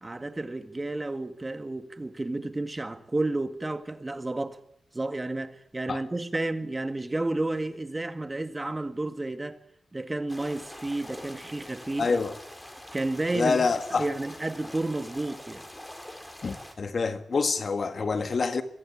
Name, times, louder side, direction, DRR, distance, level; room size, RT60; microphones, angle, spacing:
voice 1, 0.0-4.6 4.9-9.6 9.9-12.2 12.9-15.7 16.1-16.2, right 2 dB, 25° right, 1.9 m, -31 dB
sound 1, 10.3-16.7, left 1 dB, 10° left, 3.9 m, -44 dB
voice 2, 12.0-12.4 13.3-14.1 16.4-18.6, left 4 dB, 55° left, 1.7 m, -26 dB
23.0 x 16.0 x 8.9 m
cardioid pair, 80°, 0 cm